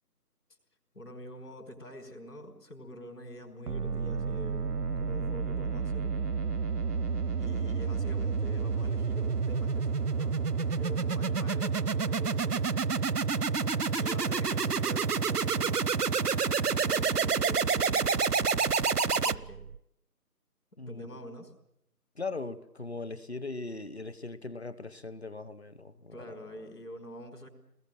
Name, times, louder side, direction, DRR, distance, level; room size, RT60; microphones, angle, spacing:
voice 1, 0.9-4.7 5.0-6.2 7.4-12.7 13.9-15.9 16.7-18.4 19.1-19.6 20.8-21.5 26.1-27.5, equal, 75° left, 5.3 m, -46 dB
sound 1, 3.7-19.8, right 5 dB, 70° right, 0.9 m, -29 dB
voice 2, 20.8-21.2 22.1-26.4, left 3 dB, 40° left, 1.0 m, -39 dB
24.0 x 20.5 x 9.2 m
figure-of-eight pair, 175°, 48 cm